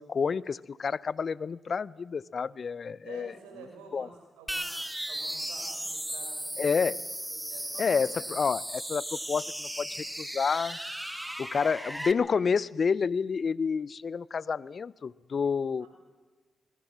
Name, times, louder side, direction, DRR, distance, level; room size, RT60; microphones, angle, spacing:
voice 1, 0.0-3.3 3.9-4.1 6.6-7.0 7.8-10.8 11.4-15.9, left 5 dB, 55° left, 23 dB, 0.6 m, -29 dB
voice 2, 3.0-4.8 5.1-6.9 7.3-8.0 15.8-15.9, right 5 dB, 90° right, 3 dB, 5.1 m, -49 dB
sound 1, 4.5-12.1, right 1 dB, 5° right, 1.8 m, -36 dB
22.0 x 21.0 x 7.3 m, 1.4 s
hypercardioid pair, 40°, 0 cm